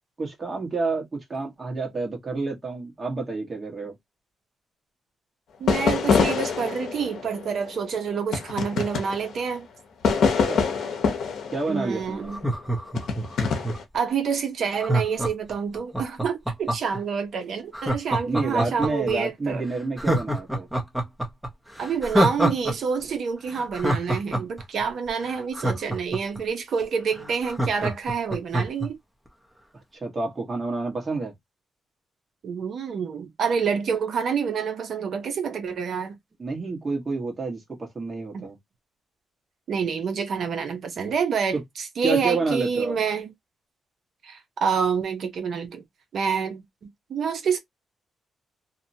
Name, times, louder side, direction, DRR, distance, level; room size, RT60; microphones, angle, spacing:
voice 1, 0.2-3.9 10.2-10.6 11.5-12.3 18.2-20.7 30.0-31.3 36.4-38.6 41.5-41.6 42.0-43.0, right 3 dB, 30° right, 1.2 m, -29 dB
voice 2, 5.6-9.7 11.7-12.4 13.9-19.6 21.8-29.0 32.4-36.2 38.3-38.5 39.7-43.3 44.2-45.8 46.1-47.6, right 6 dB, 65° right, 0.6 m, -27 dB
sound 1, 5.7-9.6 10.0-12.5 12.9-13.8, left 5 dB, 75° left, 0.6 m, -25 dB
Laughter, 12.3-14.0 14.8-17.0 17.7-19.1 19.5-19.6 20.0-22.7 23.0-23.1 23.5-26.4 26.8-26.9 27.1-28.9 29.3-29.4, right 1 dB, 5° right, 0.7 m, -26 dB
2.7 x 2.1 x 2.7 m
cardioid pair, 95°, 0 cm